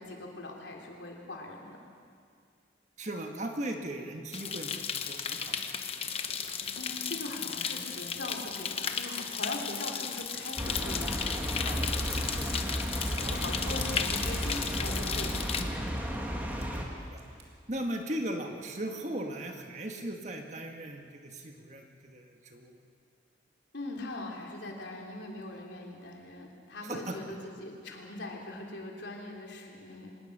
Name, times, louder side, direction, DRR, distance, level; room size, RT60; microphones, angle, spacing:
voice 1, 0.0-1.8 6.7-11.2 13.3-15.3 23.7-30.1, left 2 dB, 75° left, 0 dB, 3.5 m, -41 dB
voice 2, 3.0-5.5 11.6-11.9 13.2-13.4 15.6-16.2 16.5-17.2 17.7-22.7 26.8-27.1, right 1 dB, 40° right, 3 dB, 1.7 m, -38 dB
sound 1, 4.3-15.6, left 6 dB, 30° left, 1.0 m, -35 dB
sound 2, 10.6-16.8, equal, 10° right, 2.0 m, -33 dB
sound 3, 12.0-16.8 17.1-17.4 17.9-18.0, right 5 dB, 60° right, 2.9 m, -49 dB
25.0 x 19.5 x 6.8 m, 2.2 s
head